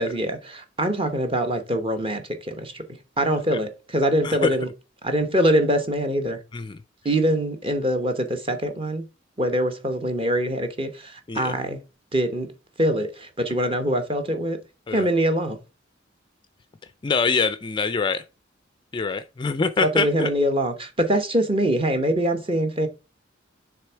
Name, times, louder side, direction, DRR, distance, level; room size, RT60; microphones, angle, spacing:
voice 1, 0.0-2.9 3.2-4.7 5.0-6.4 7.0-9.1 9.4-11.8 12.1-12.5 12.8-14.6 14.9-15.6 19.8-22.9, right 1 dB, 25° right, 1.0 m, -24 dB
voice 2, 17.0-18.2 18.9-20.3, left 4 dB, 25° left, 0.4 m, -24 dB
6.6 x 3.5 x 4.4 m
head